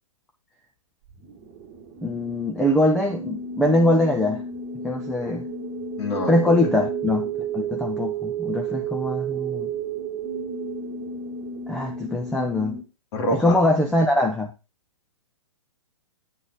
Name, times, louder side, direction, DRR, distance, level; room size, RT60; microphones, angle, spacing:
sound 1, 1.1-12.8, right 6 dB, 30° right, 1.5 m, -32 dB
voice 1, 2.0-4.4 4.8-5.5 6.3-9.7 11.7-12.8 13.3-14.5, left 1 dB, 5° left, 0.7 m, -22 dB
voice 2, 6.0-6.3 6.6-6.7 13.1-13.6, left 1 dB, 55° left, 2.7 m, -26 dB
9.4 x 3.9 x 4.9 m
figure-of-eight pair, 120°, 17 cm